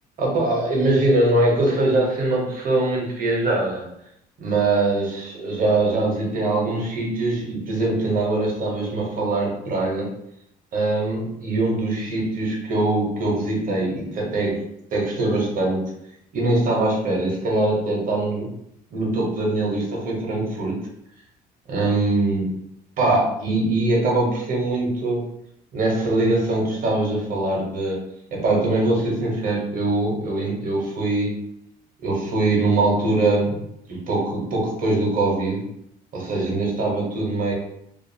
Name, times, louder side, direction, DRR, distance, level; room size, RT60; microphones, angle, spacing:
voice 1, 0.2-3.8 4.4-10.1 10.7-14.6 14.9-15.9 16.3-18.5 18.9-20.8 21.7-22.5 23.0-25.2 25.7-28.0 28.3-31.4 32.0-33.6 33.9-35.7 36.1-37.5, right 2 dB, 55° right, -2 dB, 1.0 m, -22 dB
2.5 x 2.3 x 2.7 m, 0.76 s
cardioid pair, 110°, 17 cm